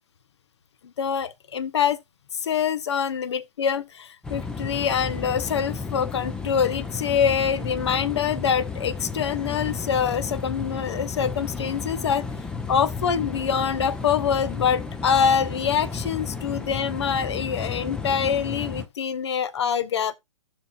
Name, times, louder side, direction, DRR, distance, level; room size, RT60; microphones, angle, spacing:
voice 1, 1.0-2.0 2.3-12.3 12.7-20.2, left 7 dB, 55° left, 0.7 m, -25 dB
sound 1, 4.2-18.9, left 4 dB, 5° left, 0.5 m, -33 dB
14.5 x 5.9 x 2.5 m
figure-of-eight pair, 125°, 18 cm